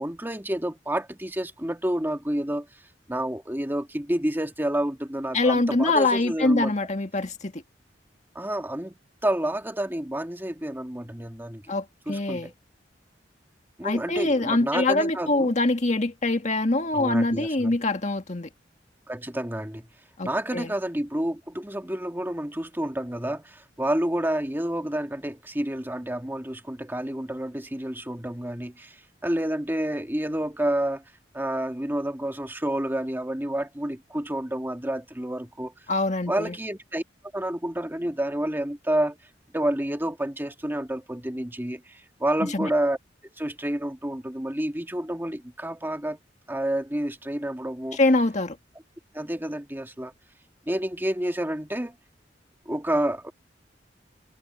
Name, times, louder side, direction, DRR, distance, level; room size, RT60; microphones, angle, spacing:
voice 1, 0.0-2.7 3.1-6.7 8.4-11.6 12.1-12.5 13.8-15.5 16.9-17.8 19.1-19.9 20.2-29.0 29.2-31.0 31.3-35.7 36.3-37.0 37.3-39.2 39.5-43.0 43.4-46.2 46.5-48.0 49.1-50.1 50.7-51.9 52.7-53.3, right 1 dB, 10° right, 1.9 m, -29 dB
voice 2, 5.3-7.6 11.7-12.5 13.8-18.5 20.2-20.7 35.9-36.6 42.4-42.7 47.9-48.6, left 2 dB, 40° left, 1.9 m, -24 dB
head